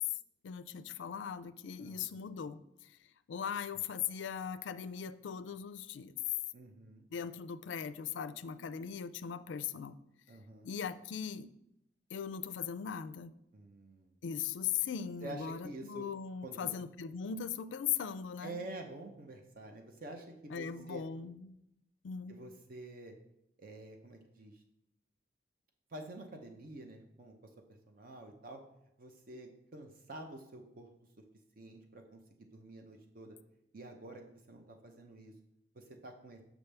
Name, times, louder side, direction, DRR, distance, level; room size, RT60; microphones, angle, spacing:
voice 1, 0.4-2.9 3.3-6.1 7.1-10.0 10.6-11.5 12.1-13.3 14.2-18.6 20.5-21.6 22.0-22.4, left 8 dB, 80° left, 14 dB, 0.4 m, -39 dB
voice 2, 6.5-7.1 10.3-10.7 13.5-14.1 15.2-16.1 16.4-16.7 18.4-21.1 22.3-23.1 23.6-24.6 25.9-27.3 27.9-28.6 29.0-30.9 31.6-33.4 33.7-35.3 35.7-36.4, right 2 dB, 50° right, 4 dB, 0.7 m, -48 dB
6.9 x 6.1 x 3.3 m, 0.81 s
head